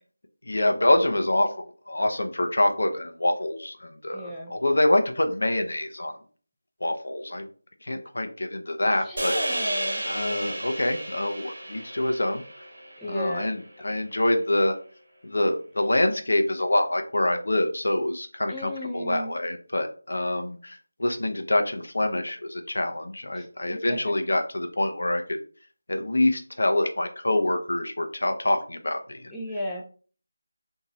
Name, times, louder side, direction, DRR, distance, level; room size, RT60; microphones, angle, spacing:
voice 1, 0.4-6.2 6.8-7.5 7.8-9.3 10.1-12.4 13.1-14.8 15.2-25.4 25.9-29.3, left 1 dB, 70° left, 5 dB, 0.5 m, -26 dB
voice 2, 4.1-4.5 8.9-10.0 13.0-13.5 18.5-19.3 23.3-23.5 23.9-24.0 29.3-29.8, left 1 dB, 5° left, -6 dB, 0.4 m, -34 dB
sound 1, 9.2-13.6, right 1 dB, 60° right, 0.8 m, -32 dB
2.9 x 2.6 x 2.5 m, 0.41 s
figure-of-eight pair, 170°, 0 cm